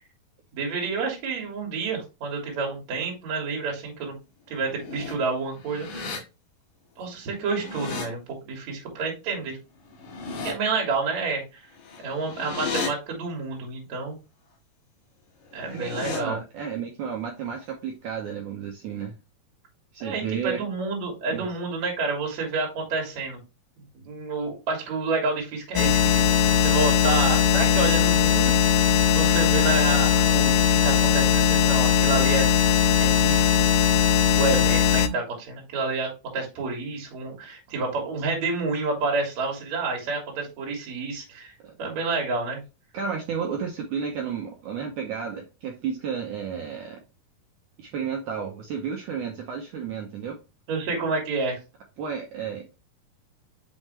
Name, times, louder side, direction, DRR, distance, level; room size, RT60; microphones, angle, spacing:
voice 1, 0.5-4.1 4.5-6.2 7.0-9.6 10.4-11.4 12.0-14.2 15.5-16.4 20.0-23.4 24.0-28.7 29.1-32.5 33.0-33.5 34.3-41.5 41.8-42.6 50.7-51.6, right 4 dB, 50° right, 0 dB, 3.1 m, -29 dB
sound 1, 4.5-5.1 5.6-6.2 7.3-8.1 9.9-10.5 11.8-12.9 15.4-16.2, left 4 dB, 60° left, 2.8 m, -34 dB
voice 2, 15.7-19.2 19.9-20.6 21.3-21.5 41.6-41.8 42.9-47.0 47.8-50.4 52.0-52.7, right 7 dB, 75° right, 2 dB, 1.8 m, -32 dB
sound 2, 25.8-35.1, left 7 dB, 90° left, 2.7 m, -20 dB
6.1 x 5.5 x 3.2 m, 0.28 s
omnidirectional pair, 4.6 m